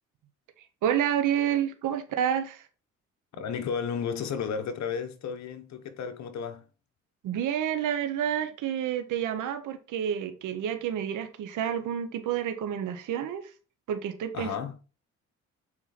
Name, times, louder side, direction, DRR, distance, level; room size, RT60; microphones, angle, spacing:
voice 1, 0.8-2.7 7.2-13.5 13.9-14.5, right 9 dB, 85° right, 1.1 m, -29 dB
voice 2, 3.3-6.7 14.3-14.8, left 6 dB, 65° left, 1.2 m, -33 dB
7.5 x 4.5 x 4.2 m
cardioid pair, 90°, 30 cm